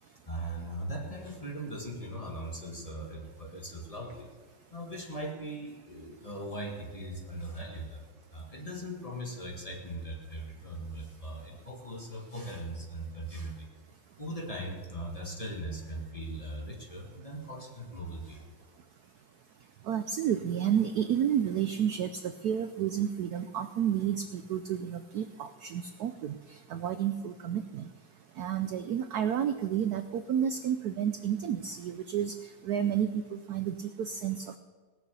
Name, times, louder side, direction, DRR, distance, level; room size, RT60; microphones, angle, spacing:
voice 1, 0.0-4.3 4.7-8.0 8.3-13.7 14.2-18.5, right 1 dB, 20° left, 0 dB, 1.7 m, -39 dB
voice 2, 19.9-26.4 26.7-27.9 28.4-32.3 32.6-34.6, right 9 dB, 70° right, 10 dB, 0.9 m, -31 dB
18.0 x 6.7 x 6.9 m, 1.5 s
omnidirectional pair, 2.2 m